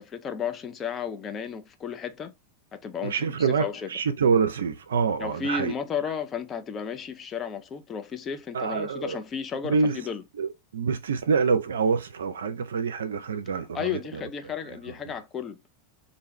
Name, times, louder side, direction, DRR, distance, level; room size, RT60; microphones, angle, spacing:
voice 1, 0.0-2.3 2.7-3.9 5.2-10.2 13.7-15.6, left 7 dB, 25° left, 0.4 m, -33 dB
voice 2, 3.0-5.7 8.5-9.2 9.6-10.0 10.4-14.2 15.1-15.2, right 5 dB, 65° right, 0.4 m, -26 dB
2.5 x 2.3 x 3.0 m
figure-of-eight pair, 90°, 0 cm